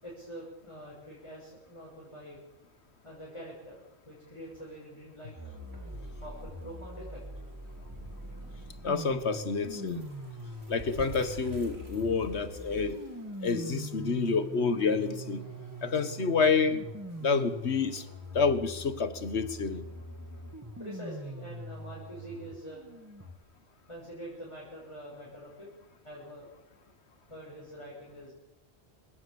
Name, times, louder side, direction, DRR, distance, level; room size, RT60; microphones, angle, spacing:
voice 1, 0.0-2.4 3.0-5.3 6.2-7.2 20.8-22.9 23.9-25.7 26.0-26.5 27.3-28.3, equal, 30° left, 6.7 m, -45 dB
sound 1, 5.4-23.3, right 1 dB, 15° right, 2.2 m, -43 dB
sound 2, 5.6-18.3, right 2 dB, 75° right, 4.5 m, -53 dB
voice 2, 8.8-10.1 10.7-13.0 13.4-15.4 15.8-16.9 17.2-18.1 18.3-19.8, left 5 dB, 90° left, 1.7 m, -28 dB
27.5 x 17.5 x 7.1 m
omnidirectional pair, 1.1 m